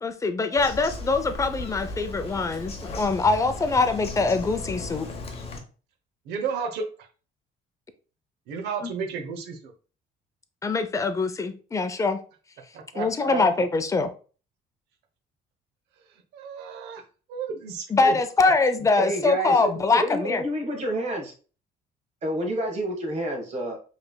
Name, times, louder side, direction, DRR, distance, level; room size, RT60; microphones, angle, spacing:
voice 1, 0.0-5.1 8.8-8.9 10.6-12.2 12.9-14.1 17.9-20.4, left 3 dB, 20° left, 0.5 m, -23 dB
Bird vocalization bird call bird song, 0.6-5.6, left 3 dB, 35° left, 0.8 m, -36 dB
voice 2, 6.3-6.8 8.5-9.7 12.7-13.6 16.3-17.0 17.3-18.2 18.4-18.5, right 5 dB, 85° right, 0.8 m, -32 dB
voice 3, 19.0-21.3 22.2-23.8, right 1 dB, 40° right, 1.4 m, -29 dB
4.9 x 3.3 x 2.2 m
cardioid pair, 110°, 17 cm